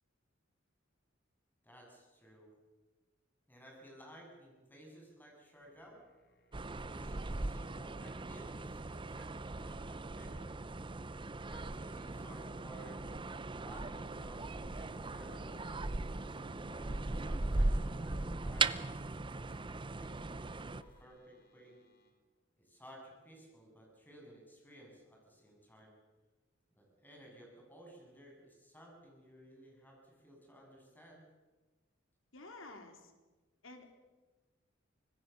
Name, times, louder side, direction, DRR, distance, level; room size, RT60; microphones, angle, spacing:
voice 1, 1.6-2.5 3.5-6.0 6.7-10.6 11.5-13.3 13.7-16.0 16.6-19.2 19.7-21.8 22.6-25.9 26.8-31.2, right 1 dB, 10° left, -1 dB, 7.9 m, -57 dB
sound 1, 5.6-22.1, left 2 dB, 55° left, 4.2 m, -68 dB
sound 2, 6.5-20.8, right 2 dB, 25° right, 0.7 m, -38 dB
sound 3, 14.6-21.0, equal, 25° left, 4.0 m, -62 dB
voice 2, 32.3-33.1 33.6-33.9, left 2 dB, 90° left, 4 dB, 3.8 m, -51 dB
25.5 x 19.5 x 7.0 m, 1.2 s
head